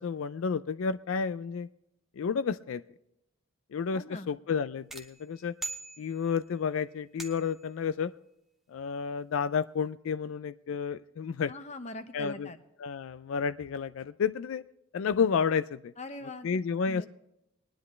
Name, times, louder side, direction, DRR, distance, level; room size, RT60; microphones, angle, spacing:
voice 1, 0.0-1.7 2.2-2.8 3.7-5.5 6.0-8.1 8.7-11.5 12.1-12.5 12.8-14.6 14.9-15.9 16.4-17.1, left 6 dB, 70° left, 15 dB, 0.3 m, -31 dB
voice 2, 3.9-4.3 11.5-12.6 16.0-16.6 16.9-17.1, left 2 dB, 30° left, 9 dB, 0.9 m, -42 dB
sound 1, 4.9-6.5 7.2-7.7, right 3 dB, ahead, 0.9 m, -42 dB
20.5 x 10.5 x 3.2 m, 0.86 s
head